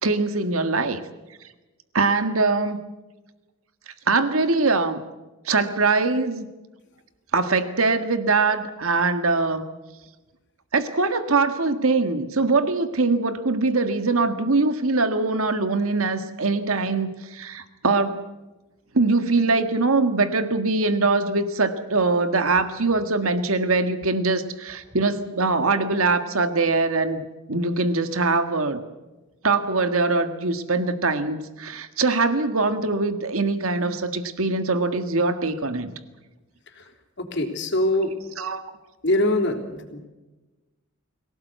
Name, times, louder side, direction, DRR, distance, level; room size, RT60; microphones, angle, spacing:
voice 1, 0.0-1.0 1.9-2.8 3.9-5.0 5.4-6.5 7.3-9.6 10.7-18.2 18.9-27.2 27.5-28.8 29.4-35.9 38.4-38.6, right 3 dB, 90° right, 9 dB, 1.8 m, -22 dB
voice 2, 37.2-38.1 39.0-40.0, left 1 dB, 55° left, 3 dB, 3.7 m, -23 dB
24.0 x 17.5 x 8.1 m, 1.1 s
head